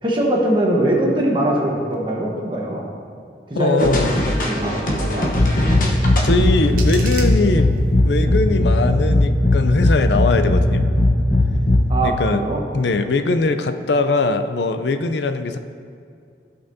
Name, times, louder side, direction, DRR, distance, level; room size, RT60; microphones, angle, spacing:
voice 1, 0.0-2.9 3.5-5.3 11.9-12.6, right 1 dB, 25° right, -2 dB, 1.2 m, -21 dB
voice 2, 3.5-4.3 6.2-7.7 8.0-10.9 12.0-12.4 12.7-15.6, left 3 dB, 70° left, 9 dB, 0.5 m, -21 dB
sound 1, 3.8-11.8, left 1 dB, 45° left, 1.1 m, -18 dB
sound 2, 6.2-8.2, right 4 dB, 50° right, 1.1 m, -36 dB
15.0 x 5.6 x 2.8 m, 2.3 s
head